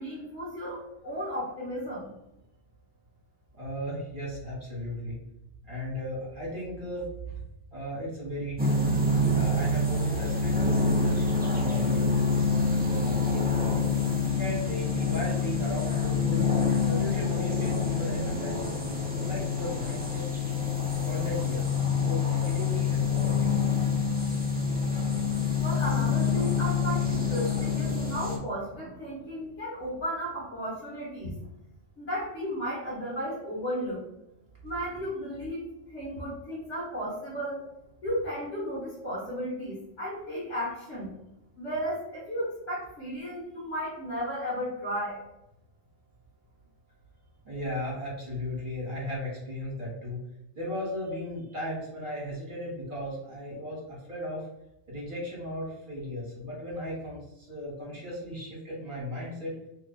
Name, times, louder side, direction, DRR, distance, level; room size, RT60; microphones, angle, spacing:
voice 1, 0.0-2.1 25.6-31.3 32.0-34.1 34.6-37.6 38.0-41.1 41.6-45.2, equal, 90° left, -9 dB, 1.6 m, -34 dB
voice 2, 3.6-5.1 5.7-7.4 7.7-8.9 9.3-13.8 14.3-16.4 16.8-20.6 21.0-23.6 47.4-50.2 50.6-54.5 54.9-59.6, equal, 45° right, -5 dB, 1.2 m, -36 dB
sound 1, 8.6-28.4, left 4 dB, 15° right, 0.3 m, -26 dB
3.2 x 2.3 x 3.7 m, 0.88 s
omnidirectional pair, 1.2 m